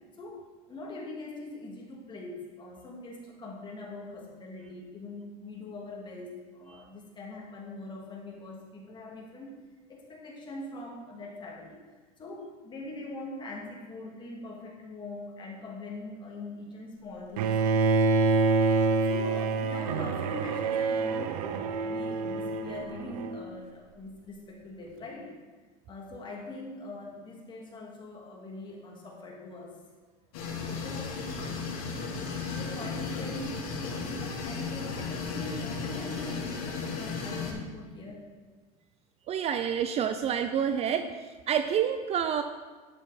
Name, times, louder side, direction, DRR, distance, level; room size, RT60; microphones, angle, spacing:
voice 1, 0.7-9.5 9.9-11.8 12.2-17.6 18.9-25.3 25.9-29.7 30.7-31.2 32.5-38.3, left 2 dB, 25° left, -2 dB, 2.5 m, -42 dB
Bowed string instrument, 17.4-23.4, right 4 dB, 90° right, 0.8 m, -27 dB
sound 1, 30.3-37.5, left 4 dB, 75° left, 2.6 m, -35 dB
voice 2, 39.3-41.1 41.5-42.4, right 8 dB, 35° right, 9 dB, 0.5 m, -28 dB
11.0 x 7.6 x 4.2 m, 1.3 s
supercardioid pair, 125°, 19 cm